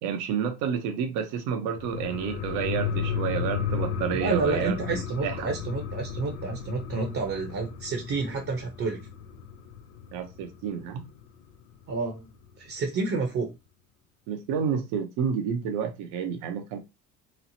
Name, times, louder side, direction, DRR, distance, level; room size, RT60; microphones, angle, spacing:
voice 1, 0.0-5.5 10.1-11.0 14.3-16.8, right 7 dB, 80° right, 0.8 m, -30 dB
sound 1, 1.8-10.9 11.2-11.3, left 7 dB, 85° left, 0.5 m, -34 dB
voice 2, 4.1-9.1 11.9-12.3 12.6-13.5, right 4 dB, 50° right, 0.8 m, -29 dB
3.1 x 2.0 x 2.7 m
supercardioid pair, 90°, 29 cm